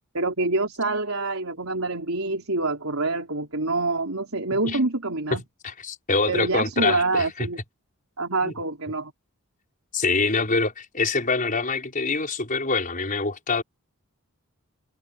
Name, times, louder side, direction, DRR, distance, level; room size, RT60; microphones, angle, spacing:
voice 1, 0.1-5.4 6.3-7.6 8.2-9.1, right 2 dB, 65° right, 5.1 m, -26 dB
voice 2, 5.3-7.5 8.4-8.5 9.9-13.6, left 3 dB, 40° left, 5.5 m, -25 dB
head